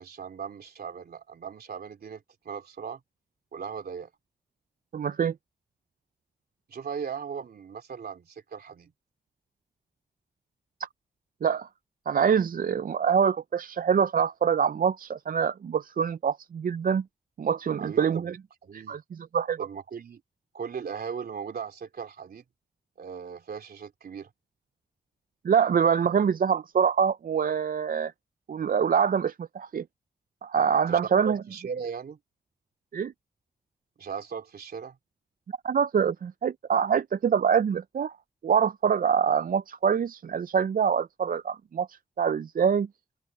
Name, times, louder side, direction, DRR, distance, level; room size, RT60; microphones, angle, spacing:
voice 1, 0.0-3.0 3.5-4.1 6.7-8.9 17.8-18.2 18.6-19.0 19.6-20.2 20.5-22.4 23.0-24.3 30.9-31.0 31.2-32.2 34.0-35.0, right 6 dB, 85° right, 3.1 m, -38 dB
voice 2, 4.9-5.3 10.8-10.9 11.4-11.7 12.1-17.0 17.4-18.4 18.7-19.7 25.4-28.1 28.5-29.8 30.4-31.4 32.9-33.1 35.6-38.1 38.4-42.9, right 7 dB, 65° right, 0.5 m, -25 dB
cardioid pair, 45°, 16 cm